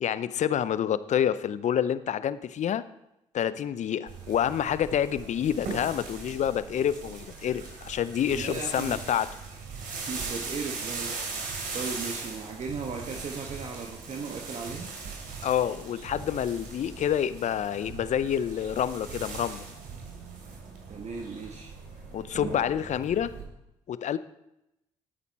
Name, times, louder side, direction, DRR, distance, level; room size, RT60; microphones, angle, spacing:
voice 1, 0.0-2.8 3.3-9.3 15.4-19.6 22.1-23.3 23.9-24.2, left 9 dB, 55° left, 15 dB, 0.6 m, -28 dB
sound 1, 4.1-23.4, right 4 dB, 65° right, 3.1 m, -39 dB
voice 2, 8.3-9.0 9.9-11.2 11.7-14.9 20.9-21.7, right 4 dB, 50° right, 2 dB, 1.3 m, -37 dB
12.5 x 8.3 x 4.2 m, 0.87 s
hypercardioid pair, 50°, 15 cm